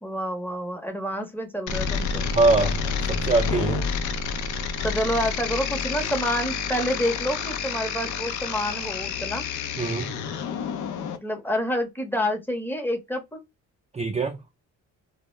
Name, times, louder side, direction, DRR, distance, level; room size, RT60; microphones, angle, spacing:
voice 1, 0.0-2.2 4.8-9.4 11.1-13.4, equal, 5° left, 0.8 m, -28 dB
sound 1, 1.7-11.2, left 6 dB, 80° left, 0.5 m, -29 dB
voice 2, 2.3-2.8 3.1-3.8 9.8-10.2 13.9-14.4, right 3 dB, 20° right, 0.4 m, -22 dB
2.1 x 2.0 x 3.0 m
cardioid pair, 90°, 30 cm